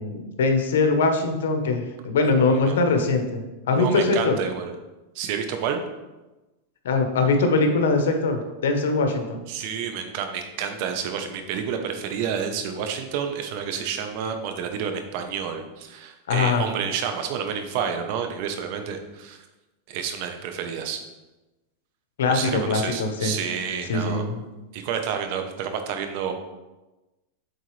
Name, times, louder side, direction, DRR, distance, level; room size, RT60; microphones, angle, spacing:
voice 1, 0.0-4.4 6.8-9.4 16.3-16.6 22.2-23.3 23.9-24.4, left 3 dB, 90° left, 5 dB, 1.0 m, -22 dB
voice 2, 2.3-2.8 3.7-4.7 5.1-5.8 9.5-19.4 19.9-21.0 22.3-24.2 24.7-26.3, right 7 dB, 50° right, 6 dB, 0.8 m, -29 dB
7.9 x 4.1 x 3.2 m, 1.1 s
supercardioid pair, 150°, 0 cm